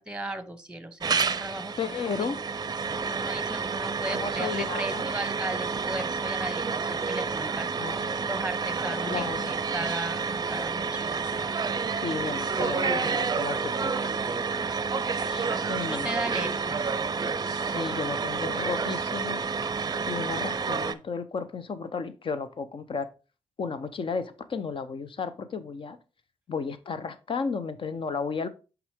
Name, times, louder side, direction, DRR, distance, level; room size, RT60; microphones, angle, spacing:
voice 1, 0.0-2.3 3.0-8.0 8.2-11.5 15.5-16.8, right 1 dB, 10° right, 1.0 m, -36 dB
sound 1, 1.0-20.9, right 5 dB, 35° right, 0.5 m, -29 dB
voice 2, 1.8-2.4 4.1-5.1 7.8-8.2 8.8-9.5 12.0-14.1 15.2-16.1 17.4-19.4 20.1-23.1 23.6-26.0 26.5-28.5, left 5 dB, 50° left, 0.8 m, -33 dB
5.9 x 5.0 x 3.5 m
supercardioid pair, 55°, 11 cm